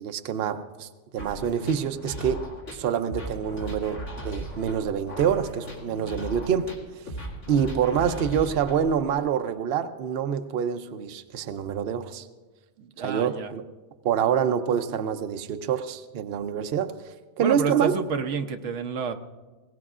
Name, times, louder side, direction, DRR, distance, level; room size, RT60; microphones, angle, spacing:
voice 1, 0.0-2.4 2.7-6.7 7.5-12.3 13.0-13.6 14.0-16.9 17.4-18.0, right 8 dB, 60° right, 0.8 m, -26 dB
sound 1, 1.2-9.2, right 1 dB, 85° left, 2.7 m, -37 dB
voice 2, 12.8-13.5 17.4-19.1, right 5 dB, 85° right, 1.1 m, -29 dB
21.5 x 18.0 x 2.5 m
omnidirectional pair, 1.2 m